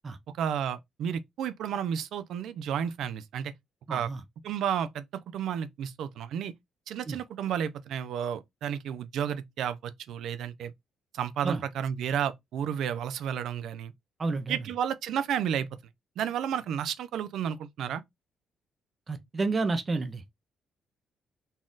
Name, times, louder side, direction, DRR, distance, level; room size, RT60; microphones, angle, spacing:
voice 1, 0.4-3.5 3.9-4.1 4.4-6.5 6.9-10.7 11.1-13.9 14.5-15.7 16.2-18.0, right 8 dB, 80° right, 0.5 m, -32 dB
voice 2, 3.9-4.2 7.1-7.2 11.4-11.6 14.2-14.6 19.1-20.2, right 3 dB, 30° right, 0.6 m, -30 dB
4.1 x 2.4 x 3.7 m
cardioid pair, 120°, 0 cm